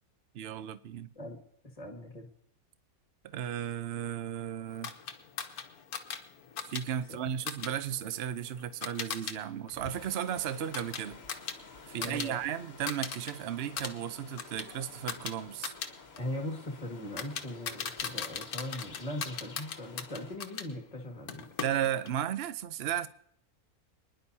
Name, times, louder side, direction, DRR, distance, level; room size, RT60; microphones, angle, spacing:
voice 1, 0.3-1.1 3.2-4.9 6.7-11.2 11.9-15.7 21.6-23.1, right 10 dB, 55° right, 0.8 m, -35 dB
voice 2, 1.8-2.3 7.1-7.2 12.0-12.4 16.2-21.5, left 1 dB, 25° left, 2.0 m, -40 dB
sound 1, 4.8-9.4 9.7-12.3 12.6-13.3 13.6-20.7 21.3-22.2, left 7 dB, 80° left, 1.4 m, -40 dB
sound 2, 9.7-20.4, left 3 dB, 45° left, 1.7 m, -51 dB
27.0 x 10.5 x 2.8 m
omnidirectional pair, 1.5 m